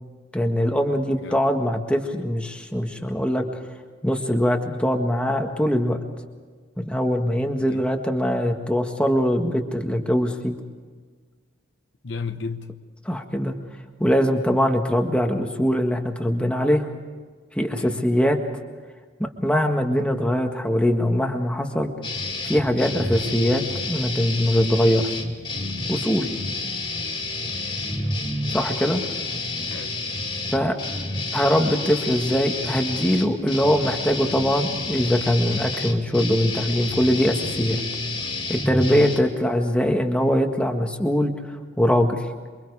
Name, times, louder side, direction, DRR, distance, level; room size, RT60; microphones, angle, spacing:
voice 1, 0.3-3.4 4.0-6.0 6.8-10.6 13.0-13.5 14.0-16.9 17.5-18.4 19.2-21.9 22.4-23.6 23.9-25.2 25.9-26.3 28.5-29.0 30.5-30.7 31.3-37.8 38.5-41.3 41.8-42.2, equal, 5° left, 1.7 m, -22 dB
voice 2, 12.0-12.7 17.8-18.1 27.9-28.2 29.7-30.0 38.9-39.2, left 4 dB, 60° left, 1.0 m, -33 dB
sound 1, 22.0-39.2, left 2 dB, 25° left, 2.7 m, -29 dB
28.0 x 24.0 x 4.9 m
head